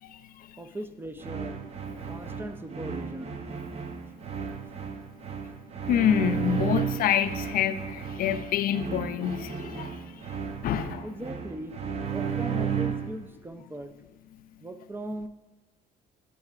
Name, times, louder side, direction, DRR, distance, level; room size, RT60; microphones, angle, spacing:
voice 1, 0.0-0.6 5.9-10.2 10.6-11.1, left 9 dB, 60° left, 11 dB, 0.4 m, -27 dB
voice 2, 0.6-1.6 2.0-3.5 11.0-11.8 12.0-13.9 14.6-15.3, right 1 dB, 15° right, 9 dB, 0.4 m, -39 dB
sound 1, 1.2-13.2, right 7 dB, 40° right, 0.7 m, -34 dB
10.5 x 5.4 x 2.4 m, 1.2 s
cardioid pair, 110°, 17 cm